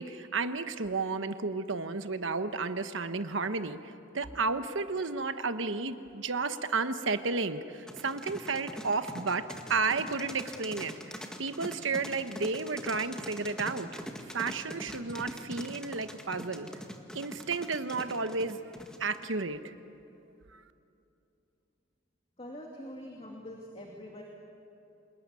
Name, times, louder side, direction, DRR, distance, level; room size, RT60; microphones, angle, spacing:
voice 1, 0.0-10.9 11.4-13.9 14.3-16.7 17.1-18.6 19.0-19.7 20.5-20.6, right 4 dB, 75° right, 10 dB, 1.2 m, -32 dB
sound 1, 7.9-19.3, equal, 5° left, 1.8 m, -42 dB
voice 2, 22.4-24.2, left 1 dB, 30° left, 0 dB, 2.6 m, -44 dB
27.5 x 20.5 x 9.7 m, 2.8 s
head